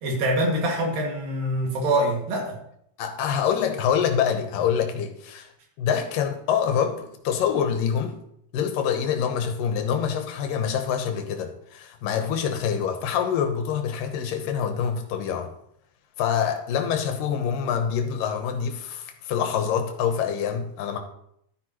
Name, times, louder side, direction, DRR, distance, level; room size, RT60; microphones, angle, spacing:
voice 1, 0.0-2.6, right 1 dB, 80° right, 0 dB, 4.0 m, -24 dB
voice 2, 3.0-5.5 5.8-8.2 8.5-15.5 16.2-21.0, left 7 dB, 80° left, 5 dB, 2.7 m, -26 dB
12.0 x 10.0 x 3.1 m, 0.73 s
omnidirectional pair, 3.9 m